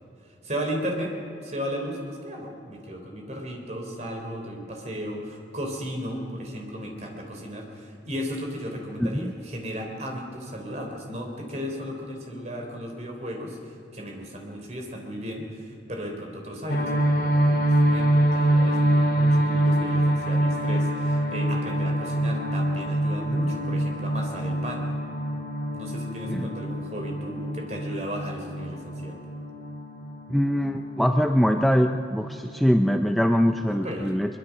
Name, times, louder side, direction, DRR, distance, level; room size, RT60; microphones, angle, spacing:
voice 1, 0.4-1.1 1.4-24.8 25.7-29.2 33.7-34.1, equal, 40° right, 2 dB, 3.8 m, -35 dB
voice 2, 9.0-9.3 26.3-26.5 30.3-34.4, equal, ahead, 5 dB, 0.5 m, -23 dB
sound 1, 16.7-33.6, right 1 dB, 70° left, 3.0 m, -25 dB
22.5 x 21.5 x 6.1 m, 2.7 s
head